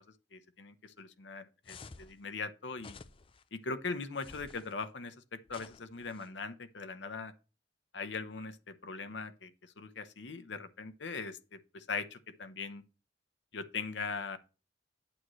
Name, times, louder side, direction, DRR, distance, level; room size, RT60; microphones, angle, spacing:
voice 1, 0.3-3.0 3.5-7.3 7.9-9.5 9.8-12.8 13.5-14.4, left 4 dB, 80° left, 0.8 m, -40 dB
sound 1, 1.6-2.1 2.8-3.4 4.2-4.7 5.5-6.3, left 4 dB, 30° left, 0.5 m, -52 dB
8.9 x 7.5 x 3.1 m
head